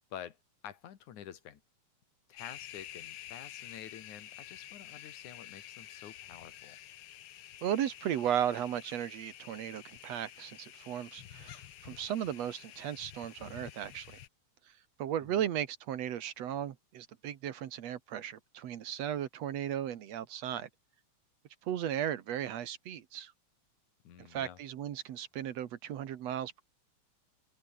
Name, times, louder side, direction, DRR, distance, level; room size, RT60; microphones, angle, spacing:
voice 1, 0.6-1.6 2.3-6.8 15.2-15.4 24.0-24.6, left 10 dB, 80° left, 3.2 m, -48 dB
sound 1, 2.4-14.3, left 11 dB, 60° left, 1.6 m, -50 dB
voice 2, 7.6-14.1 15.0-20.7 21.6-23.3 24.2-26.6, right 10 dB, 65° right, 2.3 m, -36 dB
open air
omnidirectional pair, 3.4 m